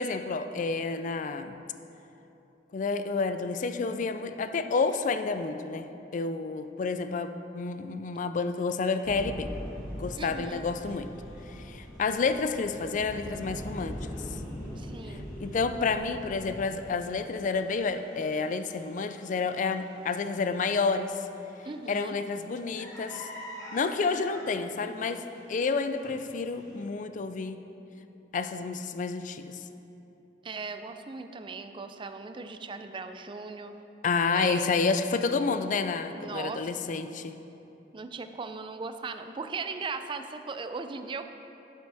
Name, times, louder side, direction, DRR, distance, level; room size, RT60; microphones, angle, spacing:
voice 1, 0.0-1.6 2.7-9.5 10.0-11.1 11.6-14.0 15.1-21.1 21.9-23.3 23.7-25.2 25.5-27.6 28.3-29.6 34.0-37.4, left 4 dB, 45° left, 9 dB, 0.4 m, -30 dB
sound 1, 9.0-16.8, equal, ahead, 0.7 m, -41 dB
sound 2, 9.5-26.9, left 1 dB, 20° left, 2.2 m, -51 dB
voice 2, 10.2-10.7 14.8-15.3 21.7-22.2 24.8-25.1 30.4-33.7 34.3-34.7 36.1-36.7 37.9-41.2, right 4 dB, 30° right, 9 dB, 0.4 m, -38 dB
10.5 x 7.6 x 3.5 m, 3.0 s
head